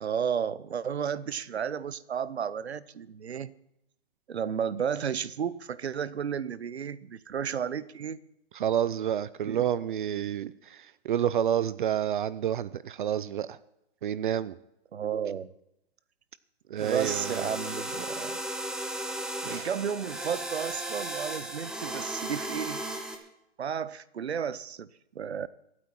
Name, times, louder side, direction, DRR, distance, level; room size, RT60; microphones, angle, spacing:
voice 1, 0.0-3.5 4.3-8.2 9.5-9.7 14.9-15.5 16.7-18.4 19.4-22.8 23.6-24.9 25.1-25.5, right 7 dB, 90° right, 18 dB, 0.8 m, -33 dB
voice 2, 8.5-13.6 14.0-14.6 16.7-17.5 19.5-19.7, right 10 dB, 55° right, 18 dB, 0.5 m, -29 dB
sound 1, 16.8-23.2, right 1 dB, ahead, 0.9 m, -35 dB
23.5 x 8.7 x 4.5 m, 0.84 s
hypercardioid pair, 150°, 31 cm